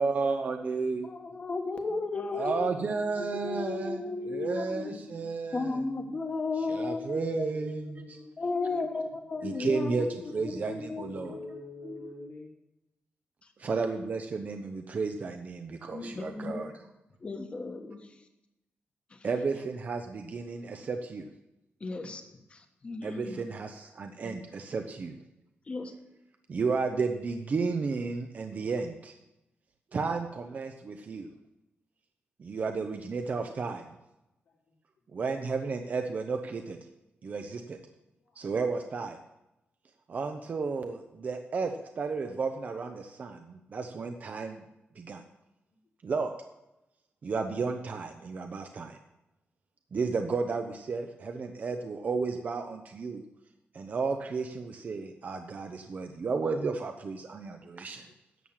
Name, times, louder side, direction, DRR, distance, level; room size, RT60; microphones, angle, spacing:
voice 1, 0.0-1.1 2.3-5.8 6.7-8.2 9.4-11.4 13.6-16.7 19.2-21.3 23.0-25.2 26.5-29.1 29.9-31.3 32.4-33.9 35.1-36.8 37.2-37.8 38.4-39.2 40.1-44.6 45.0-45.2 46.0-46.3 47.2-49.0 49.9-53.2 53.7-58.1, right 4 dB, 40° right, 6 dB, 0.7 m, -33 dB
voice 2, 1.0-2.7 3.2-4.9 5.5-7.5 8.4-10.0 10.7-11.4 11.8-12.1 15.9-16.8 17.2-18.1 19.1-19.2 21.8-22.2 22.5-23.4 24.2-24.4 25.7-25.9, left 3 dB, 30° left, 6 dB, 1.3 m, -34 dB
voice 3, 2.8-3.7 3.9-5.5 7.1-8.9 9.6-12.6 34.5-34.8 38.2-38.4 43.4-43.5 57.9-58.0, left 3 dB, 80° left, -8 dB, 4.0 m, -47 dB
11.0 x 7.5 x 7.3 m, 0.92 s
wide cardioid pair, 170°, 4 cm